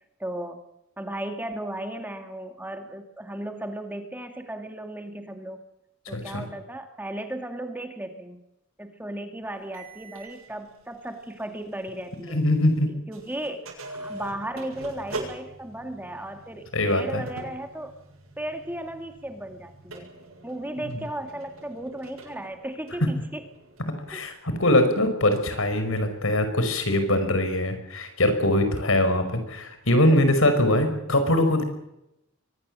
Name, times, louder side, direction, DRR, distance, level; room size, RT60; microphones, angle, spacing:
voice 1, 0.2-0.6 1.0-5.6 6.1-8.4 8.8-12.4 12.9-17.9 18.4-20.1 20.4-23.4 24.1-24.2 29.9-30.2, right 1 dB, 10° right, 6 dB, 2.3 m, -35 dB
voice 2, 6.0-6.4 12.3-12.9 16.7-17.2 21.0-21.1 24.1-31.6, left 1 dB, 75° left, 8 dB, 5.1 m, -22 dB
sound 1, 9.7-12.8 13.1-24.3, right 2 dB, 85° right, 7.6 m, -44 dB
23.5 x 19.5 x 7.6 m, 0.86 s
head